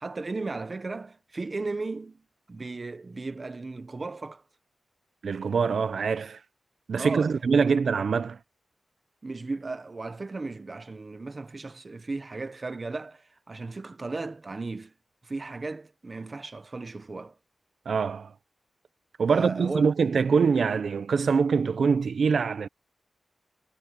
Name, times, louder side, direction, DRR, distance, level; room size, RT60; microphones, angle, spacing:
voice 1, 0.0-2.2 2.5-4.4 7.0-7.7 9.2-14.9 15.2-17.4 19.3-19.9, right 3 dB, 30° right, 1.1 m, -35 dB
voice 2, 5.2-6.4 6.9-8.4 17.9-18.3 19.2-22.7, right 5 dB, 70° right, 0.9 m, -24 dB
wide cardioid pair, 170°, 0 cm